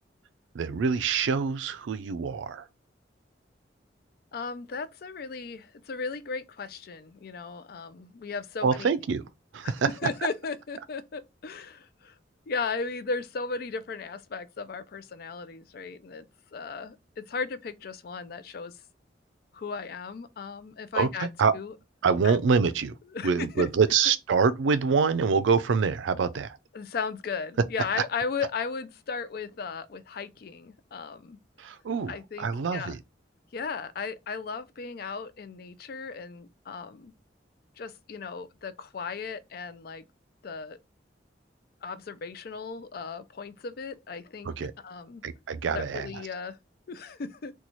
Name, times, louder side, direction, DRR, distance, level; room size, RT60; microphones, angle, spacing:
voice 1, 0.5-2.7 8.6-9.2 9.5-9.9 20.9-21.5 22.0-23.0 23.2-26.6 27.9-28.0 31.6-33.0 44.4-44.7 45.2-46.2, right 5 dB, 85° right, 0.4 m, -25 dB
voice 2, 4.3-8.9 9.6-9.7 10.0-12.1 12.5-16.3 16.5-18.7 19.5-21.3 21.5-21.7 22.2-22.4 23.1-23.7 26.7-31.4 32.1-32.9 33.5-37.1 37.8-40.0 40.4-40.8 41.8-44.5 44.8-45.2 45.7-46.6 46.9-47.5, left 5 dB, 55° left, 0.4 m, -36 dB
4.1 x 2.2 x 3.0 m
head